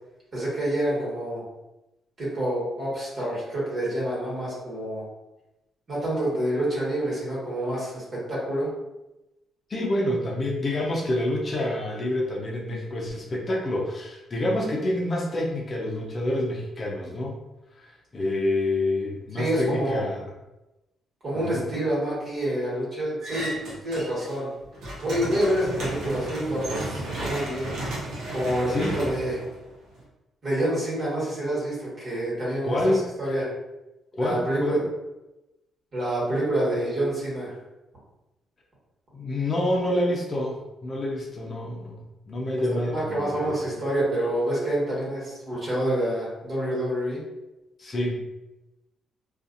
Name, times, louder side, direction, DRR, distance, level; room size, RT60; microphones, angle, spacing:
voice 1, 0.3-1.4 2.2-5.0 5.9-8.7 19.3-20.0 21.2-23.5 23.8-24.5 25.0-27.7 28.3-29.4 30.4-33.5 34.2-34.8 35.9-37.5 42.9-47.2, right 1 dB, 45° right, -7 dB, 1.5 m, -27 dB
voice 2, 9.7-17.4 17.8-20.3 21.3-21.7 28.7-29.1 32.6-33.1 34.1-34.9 39.1-42.0 42.3-43.7 47.8-48.2, left 1 dB, 35° left, -2 dB, 0.6 m, -27 dB
sound 1, 23.2-24.4 24.7-30.0, right 1 dB, 80° right, 0.8 m, -33 dB
2.6 x 2.4 x 2.5 m, 0.99 s
cardioid pair, 90°, 0 cm